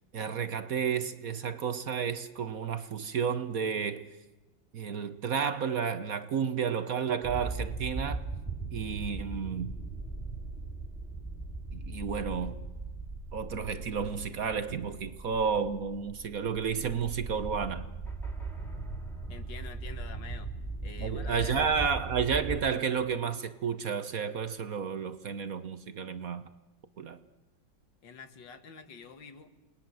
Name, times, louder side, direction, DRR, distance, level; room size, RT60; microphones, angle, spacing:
voice 1, 0.1-4.1 4.7-8.2 8.7-9.7 11.7-12.6 13.3-17.9 21.0-26.4 27.0-27.2, right 6 dB, 55° right, 1.3 m, -31 dB
sound 1, 7.2-22.7, right 3 dB, ahead, 3.0 m, -39 dB
voice 2, 19.3-20.5 20.8-21.9 28.0-29.5, left 6 dB, 70° left, 2.3 m, -47 dB
28.5 x 20.0 x 7.7 m
omnidirectional pair, 2.1 m